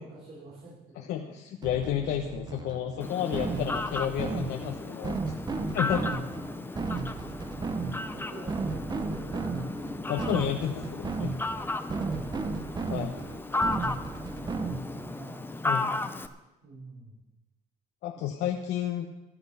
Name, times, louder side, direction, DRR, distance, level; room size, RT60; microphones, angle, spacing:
voice 1, 0.0-1.4 1.9-2.2 3.1-3.7 6.0-10.8 11.2-11.4 11.9-12.7 13.6-15.4 16.6-17.2 18.1-18.3, right 2 dB, 70° right, -7 dB, 4.4 m, -48 dB
voice 2, 1.0-5.2 5.7-6.0 10.1-11.3 12.9-13.1 15.6-15.9 18.0-19.1, left 10 dB, 80° left, 2 dB, 1.0 m, -31 dB
sound 1, 1.6-15.1, right 4 dB, 25° right, 1.0 m, -35 dB
Fowl, 3.0-16.3, left 2 dB, 10° left, 0.8 m, -35 dB
14.0 x 10.5 x 5.5 m, 0.99 s
cardioid pair, 110°, 17 cm